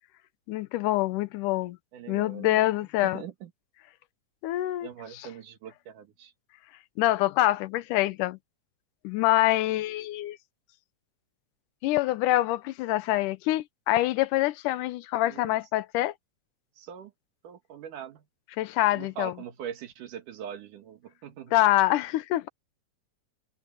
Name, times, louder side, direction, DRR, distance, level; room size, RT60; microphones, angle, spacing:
voice 1, 0.5-1.8 2.1-3.2 4.4-4.9 7.0-8.4 9.0-10.4 11.8-16.1 18.6-19.3 21.5-22.5, left 16 dB, 80° left, 2.3 m, -25 dB
voice 2, 1.9-2.7 3.0-3.5 4.8-6.3 15.2-15.6 16.8-17.1 17.4-18.2 18.9-21.5, right 9 dB, 75° right, 3.2 m, -42 dB
omnidirectional pair, 3.7 m